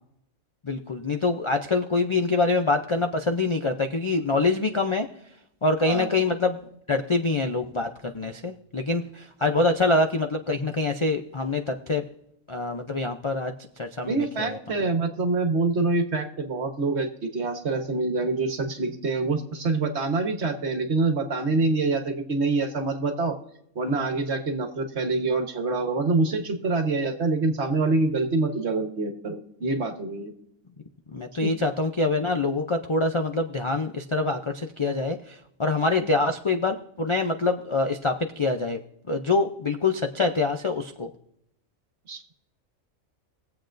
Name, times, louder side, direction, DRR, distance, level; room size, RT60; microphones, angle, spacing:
voice 1, 0.6-5.1 5.6-6.6 6.9-12.0 12.5-13.5 13.8-14.6 31.1-38.8 39.1-41.1, left 3 dB, 55° left, 5 dB, 0.3 m, -25 dB
voice 2, 14.1-23.4 23.7-30.3 31.4-31.5 36.0-36.1 42.1-42.2, right 3 dB, 55° right, 5 dB, 1.5 m, -26 dB
22.5 x 7.9 x 2.6 m, 0.77 s
omnidirectional pair, 1.4 m